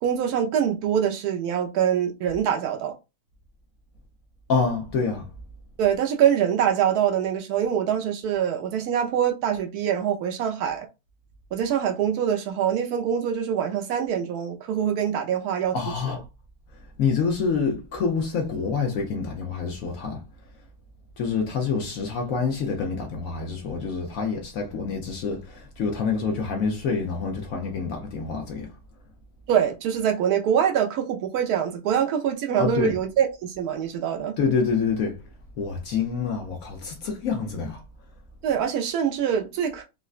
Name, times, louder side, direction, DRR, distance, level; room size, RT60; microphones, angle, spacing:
voice 1, 0.0-2.9 5.8-10.9 11.5-15.8 29.5-34.4 38.4-39.8, right 9 dB, 75° right, 0.8 m, -24 dB
voice 2, 4.5-5.3 15.7-16.2 17.0-20.2 21.2-28.7 32.6-33.0 34.4-35.3 35.6-37.8, left 5 dB, 75° left, 0.8 m, -27 dB
3.7 x 2.1 x 2.4 m
omnidirectional pair, 2.1 m